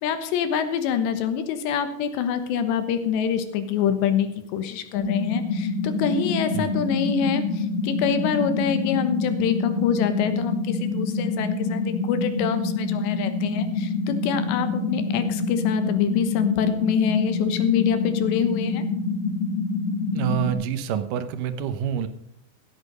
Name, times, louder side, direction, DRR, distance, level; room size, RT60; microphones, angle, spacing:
voice 1, 0.0-7.4 7.8-18.8, left 8 dB, 85° left, 9 dB, 3.5 m, -25 dB
sound 1, 5.0-20.5, left 3 dB, 55° left, 2.2 m, -26 dB
voice 2, 20.2-22.1, right 9 dB, 75° right, 11 dB, 2.0 m, -27 dB
15.0 x 8.3 x 5.3 m, 0.78 s
omnidirectional pair, 4.9 m